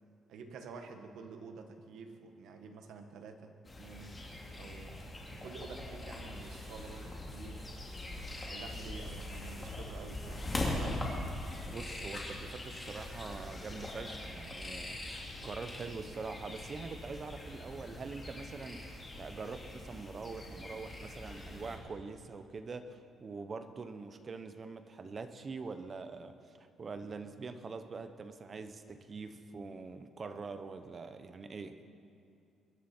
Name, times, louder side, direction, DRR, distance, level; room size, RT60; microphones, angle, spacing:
voice 1, 0.3-4.2 4.6-7.9 8.5-11.0, right 4 dB, 75° right, 6 dB, 1.4 m, -49 dB
sound 1, 3.7-21.8, left 1 dB, 20° left, 2.5 m, -42 dB
voice 2, 11.7-31.8, right 4 dB, 30° right, 9 dB, 0.8 m, -44 dB
23.0 x 11.0 x 4.4 m, 2.6 s
cardioid pair, 145°, 0 cm